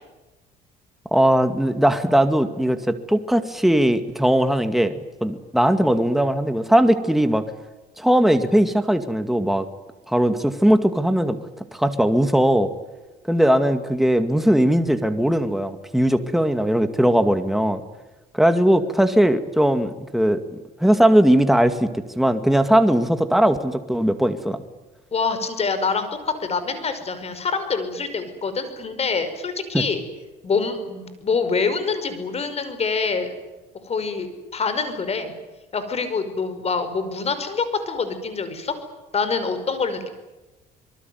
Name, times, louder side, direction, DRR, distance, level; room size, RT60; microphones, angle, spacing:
voice 1, 1.1-4.9 5.2-7.4 8.0-9.7 10.1-11.4 11.7-12.7 13.3-17.8 18.3-20.4 20.8-24.6 29.7-29.8, right 1 dB, ahead, 8 dB, 2.2 m, -19 dB
voice 2, 25.1-26.1 26.4-30.0 30.4-33.3 33.8-35.3 35.7-38.7 39.1-40.1, left 4 dB, 40° left, 10 dB, 5.4 m, -25 dB
26.0 x 22.5 x 9.5 m, 1.1 s
cardioid pair, 110°, 17 cm